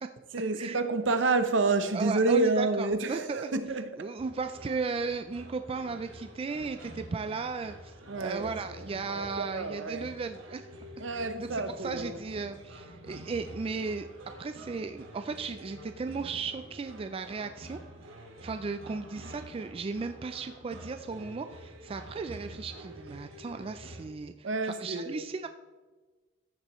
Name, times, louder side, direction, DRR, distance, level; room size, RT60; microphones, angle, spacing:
voice 1, 0.3-4.1 8.1-8.8 9.1-10.1 11.0-12.2 24.4-25.3, right 3 dB, 65° right, 0.7 m, -29 dB
voice 2, 1.9-3.5 4.0-10.6 11.1-14.1 14.4-17.8 18.4-25.5, right 4 dB, 30° right, 0.3 m, -36 dB
sound 1, 4.2-24.0, equal, 85° right, 1.9 m, -48 dB
14.0 x 8.2 x 3.1 m
head